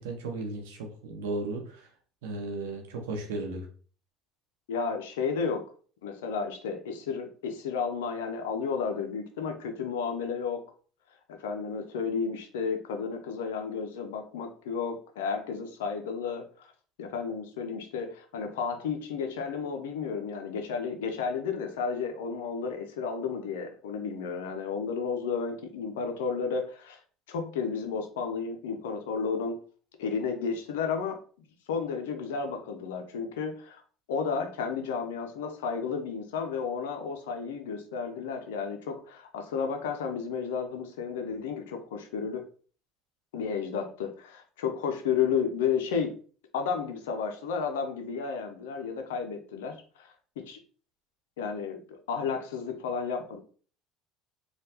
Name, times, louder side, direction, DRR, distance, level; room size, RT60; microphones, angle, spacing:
voice 1, 0.0-1.9 2.2-3.7, right 2 dB, 85° right, 4 dB, 0.8 m, -35 dB
voice 2, 4.7-5.6 6.0-10.7 11.3-16.7 17.0-27.0 27.3-29.6 30.0-31.2 31.7-33.8 34.1-42.4 43.3-46.1 46.5-50.6 51.4-53.4, left 6 dB, 90° left, 5 dB, 0.5 m, -32 dB
3.3 x 2.3 x 2.8 m, 0.41 s
supercardioid pair, 90°, 0 cm